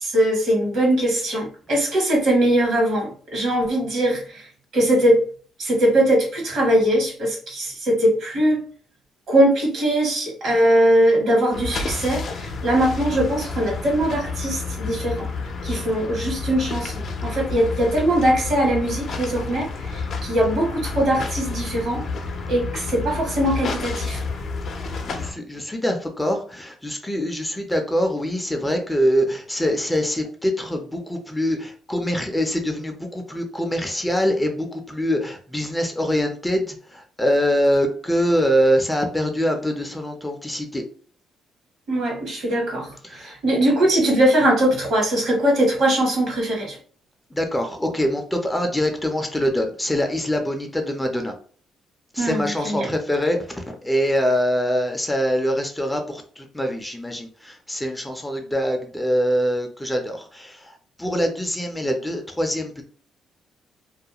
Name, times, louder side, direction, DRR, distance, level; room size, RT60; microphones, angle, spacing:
voice 1, 0.0-4.4 4.7-5.3 5.6-8.6 9.3-15.3 15.6-22.0 22.5-24.2 41.9-46.8 52.2-52.9, right 1 dB, 70° right, 0 dB, 1.2 m, -21 dB
sound 1, 11.5-25.3, left 4 dB, 60° left, 0.5 m, -30 dB
voice 2, 25.0-40.8 43.0-43.4 47.3-51.3 52.1-62.8, equal, 10° left, 3 dB, 0.5 m, -24 dB
2.3 x 2.1 x 2.8 m, 0.43 s
cardioid pair, 90°, 0 cm